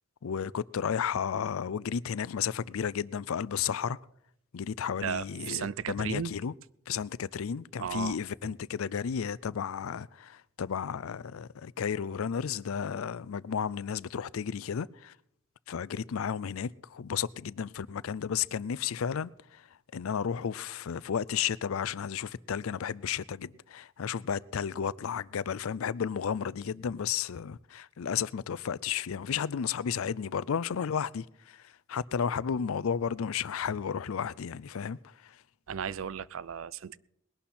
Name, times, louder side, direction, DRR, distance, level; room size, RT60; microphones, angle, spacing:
voice 1, 0.2-4.0 4.5-6.5 6.9-15.1 15.7-19.7 19.9-35.4, left 7 dB, 85° left, 0.4 m, -33 dB
voice 2, 5.0-6.3 7.8-8.2 8.4-8.5 35.7-37.0, right 7 dB, 75° right, 0.4 m, -35 dB
20.0 x 11.5 x 4.3 m
head